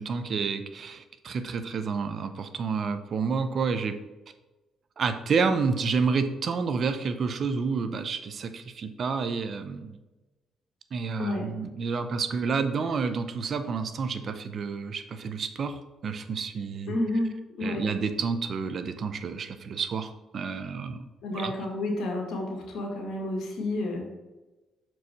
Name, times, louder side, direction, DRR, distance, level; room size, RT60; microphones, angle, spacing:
voice 1, 0.0-4.0 5.0-10.0 10.9-16.9 17.6-21.0 21.3-21.5, right 5 dB, 55° right, 9 dB, 0.6 m, -29 dB
voice 2, 16.9-17.3 17.6-17.9 21.2-24.0, left 1 dB, 75° left, 0 dB, 1.8 m, -30 dB
6.3 x 4.6 x 4.1 m, 1.1 s
cardioid pair, 90°, 0 cm